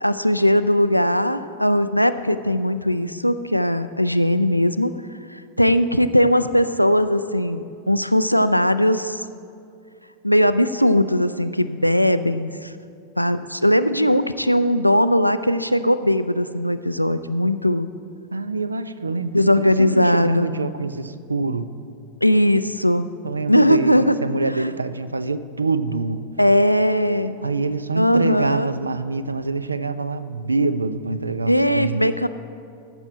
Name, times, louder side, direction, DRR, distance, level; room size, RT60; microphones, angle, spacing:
voice 1, 0.0-4.9 5.3-9.2 10.2-12.7 13.2-17.9 19.3-20.5 22.2-23.1 23.5-24.2 24.5-24.7 26.4-27.3 28.0-28.7 31.5-32.3, equal, 90° left, 12 dB, 0.3 m, -19 dB
voice 2, 18.3-21.7 23.2-26.2 27.4-32.1, right 3 dB, 80° right, 14 dB, 0.4 m, -25 dB
14.0 x 6.1 x 4.4 m, 2.5 s
figure-of-eight pair, 90°, 0 cm